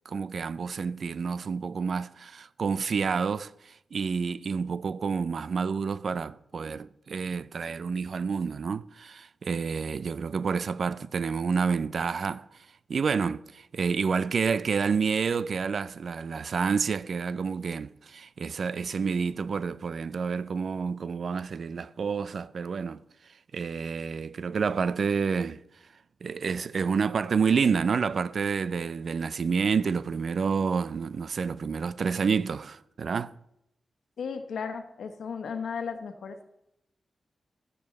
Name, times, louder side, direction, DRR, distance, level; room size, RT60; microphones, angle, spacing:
voice 1, 0.1-23.0 23.5-25.6 26.2-33.3, right 5 dB, 70° right, 0.5 m, -29 dB
voice 2, 34.2-36.4, left 6 dB, 85° left, 1.2 m, -35 dB
14.0 x 9.8 x 4.1 m
cardioid pair, 55°, 0 cm